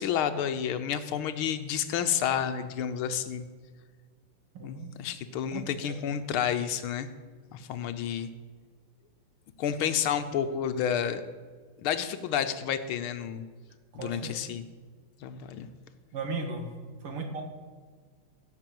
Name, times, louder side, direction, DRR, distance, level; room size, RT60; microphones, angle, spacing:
voice 1, 0.0-3.4 4.6-7.1 7.5-8.3 9.6-11.2 11.8-13.4 13.9-14.7 15.2-15.7, left 8 dB, 75° left, 10 dB, 1.6 m, -30 dB
voice 2, 4.5-5.0 5.5-5.9 13.9-14.4 16.1-16.7 17.0-17.5, right 3 dB, 80° right, 4 dB, 2.7 m, -36 dB
16.0 x 6.1 x 7.6 m, 1.5 s
omnidirectional pair, 2.4 m